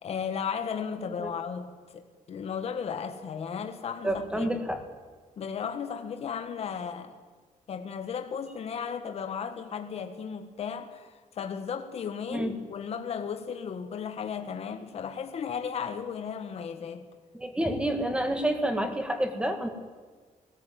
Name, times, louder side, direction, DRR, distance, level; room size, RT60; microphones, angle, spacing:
voice 1, 0.0-4.5 5.4-7.2 7.7-17.1, left 7 dB, 45° left, 1.5 m, -35 dB
voice 2, 4.0-4.8 12.3-12.6 17.3-19.7, right 1 dB, 5° right, 1.8 m, -28 dB
19.5 x 16.5 x 9.2 m
wide cardioid pair, 170°, 14 cm